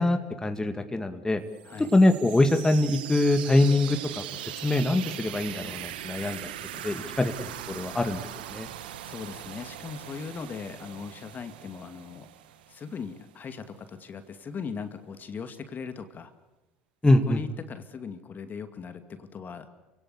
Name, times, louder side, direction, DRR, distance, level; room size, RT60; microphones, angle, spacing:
voice 1, 0.0-1.4 1.8-6.4 6.7-8.7 17.0-17.4, left 2 dB, 15° left, 6 dB, 2.2 m, -24 dB
sound 1, 1.5-13.2, right 12 dB, 85° right, 1.4 m, -40 dB
voice 2, 6.4-7.2 9.1-12.3 12.7-16.3 17.3-19.7, left 5 dB, 40° left, 8 dB, 2.4 m, -39 dB
28.5 x 17.5 x 8.4 m, 1.1 s
hypercardioid pair, 70°, 5 cm